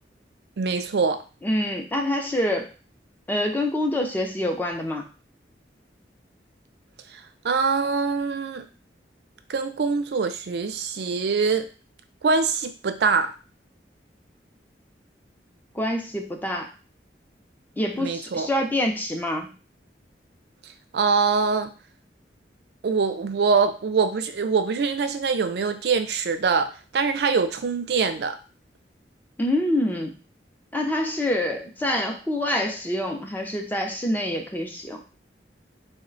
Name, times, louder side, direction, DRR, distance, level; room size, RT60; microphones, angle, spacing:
voice 1, 0.6-1.2 7.1-8.6 9.5-11.7 12.2-13.3 18.0-18.5 20.9-21.7 22.8-28.4, right 5 dB, 65° right, 8 dB, 0.4 m, -24 dB
voice 2, 1.4-2.7 3.3-5.1 15.7-16.7 17.8-19.5 29.4-30.2 30.7-35.0, left 1 dB, 10° left, 2 dB, 0.4 m, -26 dB
3.2 x 2.1 x 3.7 m, 0.34 s
head